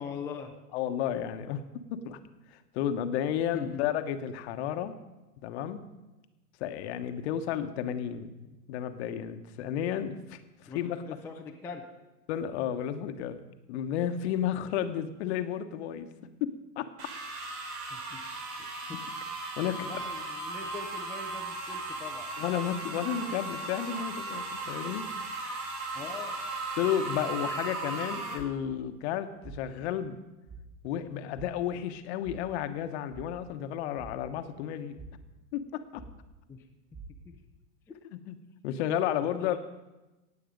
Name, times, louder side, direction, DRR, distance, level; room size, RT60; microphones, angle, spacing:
voice 1, 0.0-0.5 3.5-3.8 10.7-11.8 17.9-19.0 19.6-22.3 25.9-26.4 36.5-36.6 37.2-37.3 37.9-38.0 39.4-39.6, left 5 dB, 5° left, 1 dB, 0.5 m, -42 dB
voice 2, 0.7-1.6 1.9-2.2 2.5-4.9 5.4-5.9 6.6-8.4 8.7-11.0 12.3-13.4 13.7-16.1 16.4-16.9 19.6-20.0 22.4-25.1 26.8-30.2 30.8-35.0 35.5-36.0 38.3-38.4 38.6-39.6, left 10 dB, 45° left, 9 dB, 1.1 m, -32 dB
sound 1, 17.0-28.3, right 2 dB, 80° right, 4.6 m, -37 dB
sound 2, 28.4-28.9 29.4-29.9 30.4-30.9 31.3-31.8 32.2-32.7 33.1-33.5 34.0-34.6 34.9-35.4 36.0-36.4 36.9-37.4, right 4 dB, 25° right, 2.6 m, -47 dB
16.5 x 8.4 x 5.2 m, 1.1 s
hypercardioid pair, 130°, 47 cm